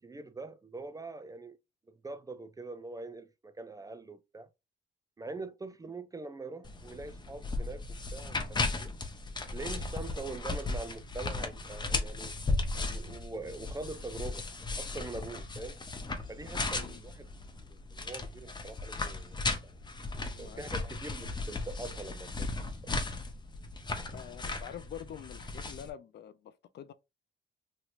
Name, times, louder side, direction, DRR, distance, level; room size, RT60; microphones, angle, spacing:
voice 1, 0.0-1.6 2.0-4.5 5.2-8.9 9.5-12.4 12.8-15.8 16.3-17.3 17.6-19.7 20.4-22.9, right 3 dB, 20° right, 0.3 m, -43 dB
sound 1, 6.6-25.9, left 3 dB, 20° left, 0.7 m, -36 dB
voice 2, 20.3-20.8 24.1-26.9, left 10 dB, 60° left, 0.4 m, -46 dB
3.1 x 2.9 x 2.5 m
cardioid pair, 90°, 20 cm